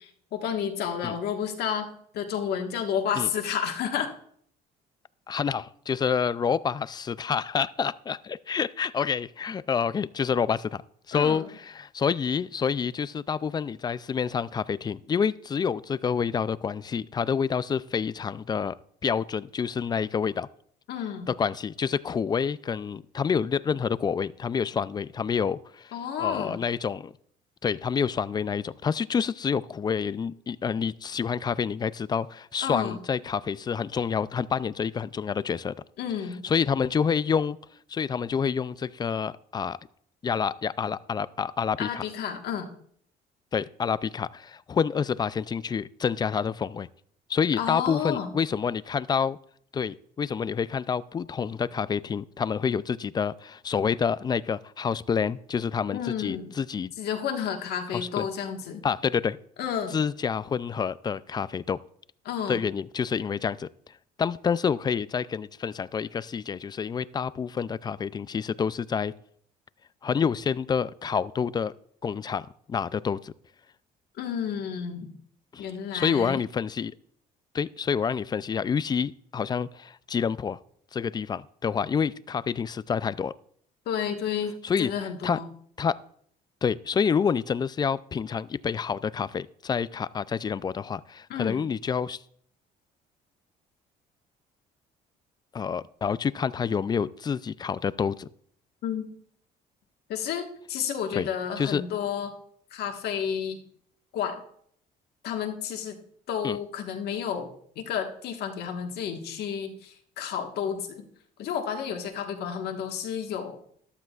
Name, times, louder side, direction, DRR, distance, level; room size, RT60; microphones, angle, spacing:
voice 1, 0.3-1.9 2.1-4.1 11.1-11.4 20.9-21.3 25.9-26.6 32.6-33.0 36.0-36.4 41.8-42.7 47.6-48.3 55.9-56.5 57.0-58.8 59.6-60.0 62.2-62.6 74.2-75.1 75.6-76.4 83.8-84.5 84.8-85.5 91.3-91.6 98.8-99.1 100.1-102.3 102.7-103.6 104.1-104.4 105.2-105.9 106.3-111.0 111.4-113.6, left 8 dB, 70° left, 4 dB, 1.5 m, -31 dB
voice 2, 5.3-10.8 11.1-18.7 19.0-20.5 21.3-25.9 26.2-27.1 27.6-35.7 36.4-37.6 37.9-39.8 40.2-42.0 43.5-46.9 47.3-49.4 49.7-56.9 57.9-58.3 58.8-59.4 59.9-61.8 62.5-63.7 64.2-69.1 70.0-71.7 72.0-73.3 75.5-75.6 75.9-76.9 77.5-80.6 80.9-83.3 84.6-84.9 85.2-85.4 85.8-86.0 86.6-92.2 95.5-98.3 101.1-101.3 101.6-101.8 106.4-106.6, left 6 dB, 25° left, 18 dB, 0.3 m, -28 dB
13.5 x 12.0 x 2.4 m, 0.63 s
cardioid pair, 110°, 17 cm